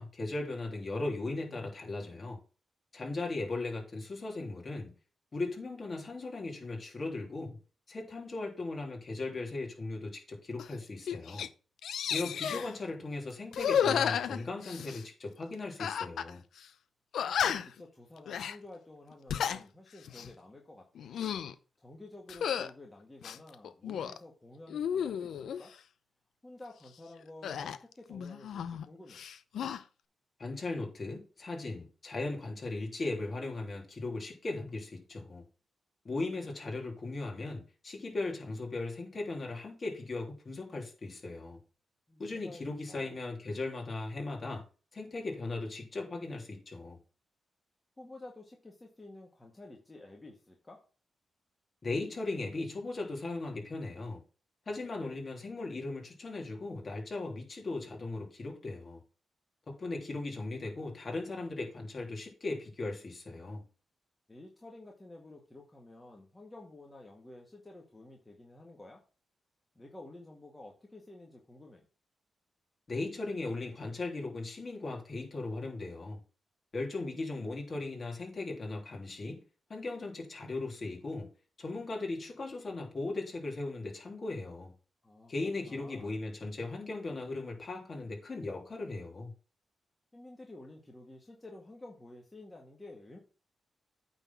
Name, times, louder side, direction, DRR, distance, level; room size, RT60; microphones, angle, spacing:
voice 1, 0.0-2.4 2.9-4.9 5.3-7.6 7.9-11.5 12.1-16.4 30.4-35.4 36.0-41.6 42.2-44.6 44.9-47.0 51.8-54.2 54.7-59.0 59.7-63.6 72.9-76.2 76.7-79.4 79.7-81.3 81.6-84.7 85.3-89.3, left 2 dB, 40° left, 3.1 m, -38 dB
sound 1, 10.6-10.7 11.1-11.5 11.8-12.7 13.5-15.0 15.8-16.3 16.6-16.7 17.1-17.8 18.3-18.6 19.1-19.6 20.0-20.3 20.9-21.5 22.3-22.7 23.2-24.2 24.7-25.6 27.4-28.8 29.1-29.8, left 8 dB, 80° left, 0.6 m, -33 dB
voice 2, 12.5-13.0 17.2-21.1 21.8-25.7 26.4-29.2 42.1-42.6 42.9-43.1 48.0-50.8 54.7-55.2 64.3-69.0 69.8-71.9 85.0-85.3 85.7-86.2 90.1-93.2, left 2 dB, 20° left, 1.9 m, -51 dB
8.9 x 4.1 x 5.9 m
cardioid pair, 90°, 0 cm